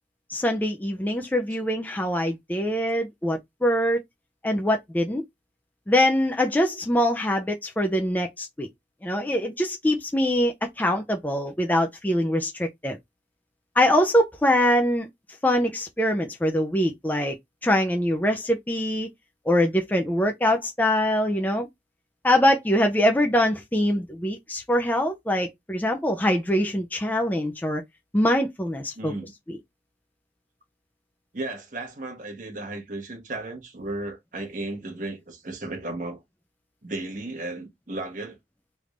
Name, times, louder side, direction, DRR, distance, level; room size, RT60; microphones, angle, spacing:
voice 1, 0.3-4.0 4.4-5.2 5.9-8.7 9.0-13.0 13.8-15.1 15.4-17.3 17.6-19.1 19.5-21.7 22.2-27.8 28.1-29.1 29.5-29.6, equal, 10° left, 0.4 m, -23 dB
voice 2, 29.0-29.3 31.3-36.2 36.8-38.4, right 2 dB, 45° right, 1.1 m, -34 dB
3.3 x 2.5 x 3.1 m
head